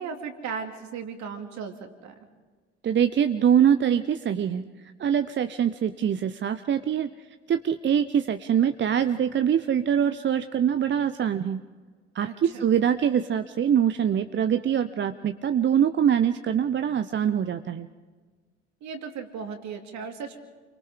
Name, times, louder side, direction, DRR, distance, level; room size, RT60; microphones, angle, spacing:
voice 1, 0.0-2.1 12.2-12.6 18.8-20.4, right 6 dB, 55° right, 4 dB, 2.7 m, -36 dB
voice 2, 2.8-7.1 7.5-11.6 12.1-17.9, right 8 dB, 35° right, 10 dB, 0.8 m, -24 dB
29.5 x 23.5 x 3.8 m, 1.4 s
figure-of-eight pair, 55°, 35 cm